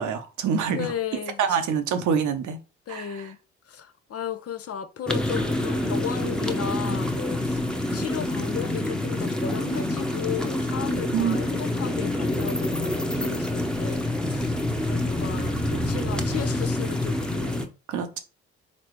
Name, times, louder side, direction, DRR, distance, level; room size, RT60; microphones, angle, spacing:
voice 1, 0.0-0.9 1.4-2.6 2.9-3.3 11.1-11.4 17.9-18.2, right 7 dB, 60° right, 0.9 m, -26 dB
voice 2, 0.7-1.4 2.9-3.4 3.7-7.6 7.9-14.6 14.9-17.7, left 8 dB, 45° left, 0.7 m, -35 dB
sound 1, 5.1-17.7, left 1 dB, ahead, 1.0 m, -27 dB
4.2 x 4.1 x 3.1 m
hypercardioid pair, 40°, 33 cm